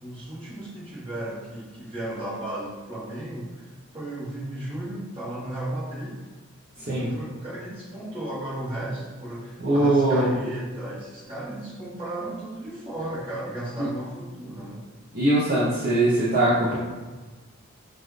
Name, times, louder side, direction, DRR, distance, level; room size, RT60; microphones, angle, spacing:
voice 1, 0.0-6.2 6.9-14.8, right 1 dB, 25° right, -8 dB, 1.5 m, -35 dB
voice 2, 6.8-7.1 9.6-10.3 15.1-16.8, right 1 dB, 45° right, -8 dB, 0.8 m, -21 dB
5.9 x 2.5 x 3.3 m, 1.3 s
head